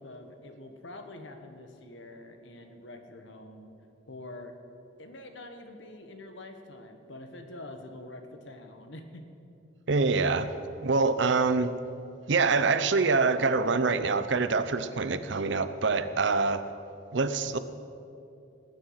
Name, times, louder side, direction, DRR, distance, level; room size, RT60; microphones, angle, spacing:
voice 1, 0.0-3.7 4.1-4.5 5.0-9.2, left 2 dB, 70° left, 6 dB, 1.4 m, -45 dB
voice 2, 9.9-11.7 12.3-16.6 17.1-17.6, right 4 dB, 65° right, 12 dB, 0.6 m, -25 dB
18.5 x 9.2 x 5.7 m, 2.7 s
head